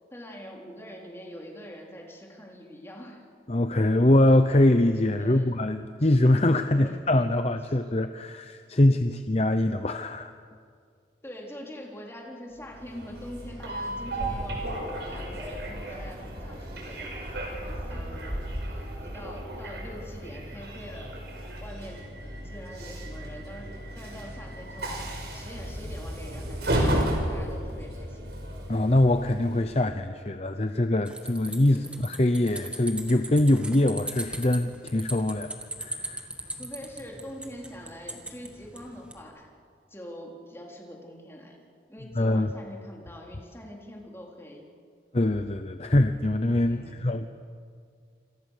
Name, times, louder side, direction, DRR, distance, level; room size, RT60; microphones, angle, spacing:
voice 1, 0.1-3.2 5.2-5.5 6.7-7.0 7.7-7.8 11.2-21.2 21.6-22.1 22.4-25.0 25.3-28.3 31.7-32.0 36.5-39.5 39.9-41.6 41.9-44.7 46.7-47.1, equal, 15° left, -1 dB, 3.9 m, -44 dB
voice 2, 3.5-10.3 28.7-36.3 42.2-42.5 45.1-47.3, left 1 dB, 35° left, 8 dB, 0.8 m, -23 dB
Train, 12.6-29.9, right 1 dB, 70° right, 6.1 m, -34 dB
sound 1, 14.2-19.4, equal, 35° right, 5.0 m, -38 dB
sound 2, 31.1-39.2, right 1 dB, 5° right, 2.0 m, -39 dB
27.5 x 27.0 x 6.7 m, 2.2 s
head